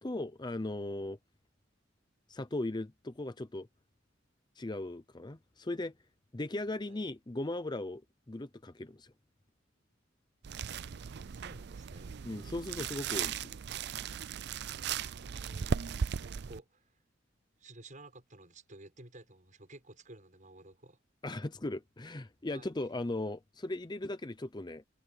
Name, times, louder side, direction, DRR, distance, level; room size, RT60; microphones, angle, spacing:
voice 1, 0.0-1.2 2.3-3.7 4.6-5.9 6.3-8.0 8.3-9.1 12.2-13.5 21.2-24.8, left 2 dB, 20° left, 0.7 m, -38 dB
sound 1, 10.4-16.6, right 7 dB, 60° right, 0.5 m, -37 dB
voice 2, 11.3-12.2 15.2-15.9 16.3-17.0 17.6-21.0 22.5-22.7, right 2 dB, 40° right, 6.9 m, -53 dB
head